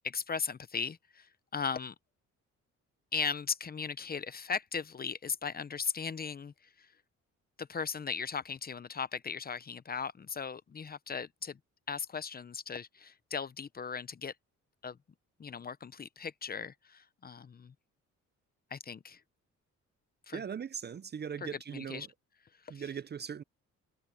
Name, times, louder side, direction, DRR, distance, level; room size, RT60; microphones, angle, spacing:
voice 1, 0.0-1.9 3.1-6.9 7.6-11.6 11.9-14.3 14.8-15.0 15.4-17.7 18.7-19.2 20.3-20.4 21.7-22.1 22.6-22.8, left 6 dB, 30° left, 0.8 m, -37 dB
voice 2, 20.3-22.1 22.7-23.4, right 7 dB, 35° right, 0.6 m, -39 dB
cardioid pair, 90°, 30 cm